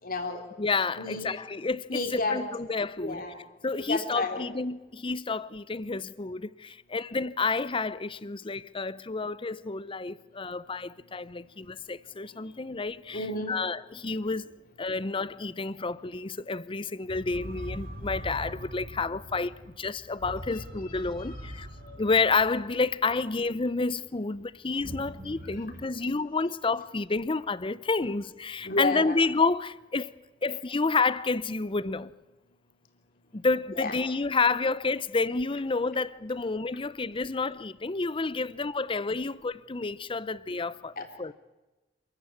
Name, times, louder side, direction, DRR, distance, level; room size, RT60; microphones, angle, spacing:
voice 1, 0.0-0.4 1.0-1.3 1.9-2.4 3.0-3.4 3.8-4.4 13.1-13.6 20.5-20.9 21.2-21.3 21.8-22.0 28.6-29.1 33.7-33.9 41.0-41.1, left 2 dB, 50° left, 3.4 m, -31 dB
voice 2, 0.6-3.2 3.6-13.2 13.5-14.5 14.8-21.7 22.0-30.1 30.4-32.1 33.3-41.3, left 4 dB, 30° left, 0.7 m, -29 dB
sound 1, 17.1-23.6 24.8-25.9, equal, 55° right, 2.2 m, -42 dB
27.5 x 14.0 x 9.6 m
head